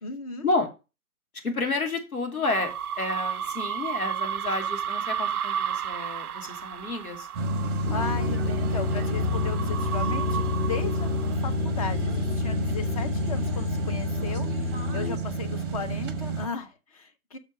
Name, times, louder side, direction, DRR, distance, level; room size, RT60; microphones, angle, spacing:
voice 1, 0.0-0.5 7.9-17.4, left 4 dB, 25° left, 0.8 m, -36 dB
voice 2, 1.4-7.3 14.9-15.0, left 3 dB, 75° left, 2.8 m, -30 dB
sound 1, 2.4-11.3, right 9 dB, 80° right, 0.6 m, -33 dB
sound 2, 7.3-16.5, right 1 dB, 15° right, 0.8 m, -29 dB
sound 3, 7.9-15.2, left 5 dB, 40° left, 1.8 m, -31 dB
6.5 x 5.3 x 6.6 m
figure-of-eight pair, 140°, 44 cm